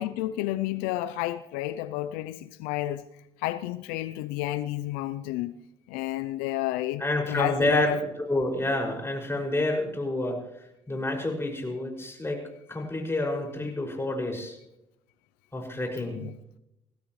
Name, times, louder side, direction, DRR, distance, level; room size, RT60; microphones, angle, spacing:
voice 1, 0.0-3.0 3.4-5.5 5.9-7.0 7.3-8.0 16.2-16.4, left 15 dB, 85° left, 0.5 m, -30 dB
voice 2, 7.0-8.0 8.3-10.4 10.9-12.4 12.7-14.6 15.5-16.2, left 2 dB, 15° left, 6.2 m, -28 dB
21.0 x 16.0 x 3.2 m
supercardioid pair, 65°, 15 cm